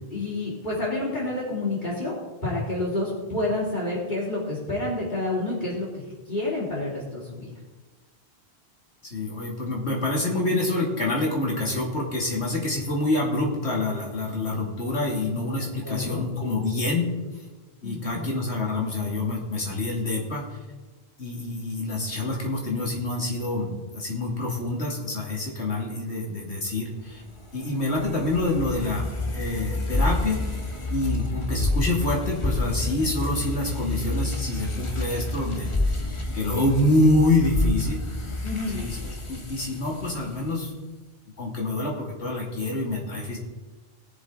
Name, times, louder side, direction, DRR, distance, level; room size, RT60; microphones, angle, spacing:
voice 1, 0.1-7.5 15.8-16.3 17.8-18.3 38.4-38.8, left 2 dB, 45° left, -9 dB, 3.5 m, -29 dB
voice 2, 9.1-17.1 17.8-20.6 21.2-27.2 27.5-30.4 30.9-35.7 36.3-38.0 38.7-39.0 39.3-40.7 41.4-43.4, left 2 dB, 75° left, -1 dB, 2.9 m, -26 dB
sound 1, 27.2-40.6, left 2 dB, 30° left, 1.2 m, -29 dB
19.5 x 7.1 x 3.9 m, 1.2 s
omnidirectional pair, 1.1 m